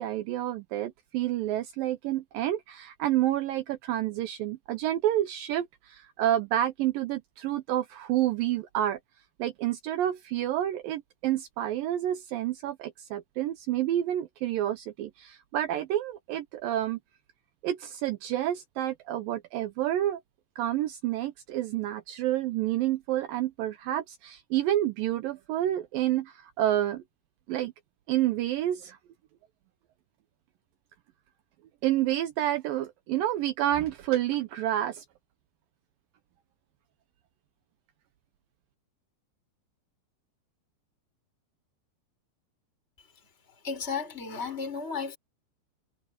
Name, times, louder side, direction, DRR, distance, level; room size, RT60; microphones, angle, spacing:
voice 1, 0.0-9.0 9.4-17.0 17.6-20.2 20.6-27.0 27.5-27.7 28.1-29.0 31.8-35.0, right 12 dB, 80° right, 2.1 m, -29 dB
voice 2, 43.6-45.2, left 5 dB, 15° left, 6.4 m, -33 dB
omnidirectional pair, 4.9 m